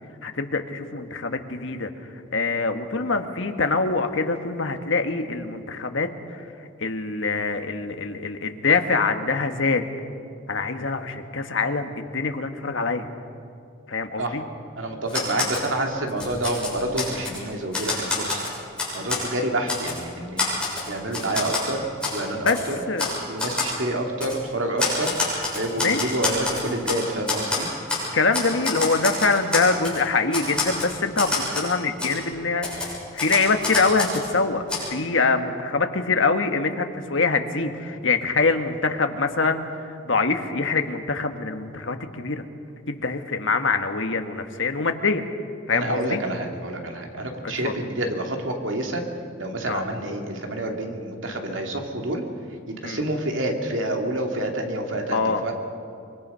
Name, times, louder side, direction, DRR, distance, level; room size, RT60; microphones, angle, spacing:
voice 1, 0.2-1.9 2.3-6.4 6.8-9.9 10.5-13.1 13.9-14.4 21.3-21.4 22.4-22.6 22.9-23.1 25.8-26.2 28.1-42.4 42.9-45.2 45.7-46.2 47.6-47.7 49.7-49.8 52.8-53.0 55.1-55.4, left 4 dB, 70° left, 6 dB, 1.4 m, -24 dB
voice 2, 14.8-18.4 18.9-20.5 20.9-21.8 22.1-22.8 23.3-25.2 25.5-27.7 45.7-49.0 49.4-52.2 52.7-55.5, right 1 dB, 75° right, 2 dB, 2.6 m, -28 dB
Typewriter, 15.1-15.7 16.1-17.4 17.7-19.3 19.7-20.0 20.4-21.7 22.0-22.2 22.5-22.6 23.0-23.1 23.4-23.7 24.2-24.4 24.8-27.0 27.3-28.1 28.3-30.0 30.3-31.7 32.0-32.1 32.6-34.3 34.7-34.8, left 3 dB, 5° left, 7.2 m, -27 dB
25.0 x 23.5 x 5.6 m, 2.4 s
head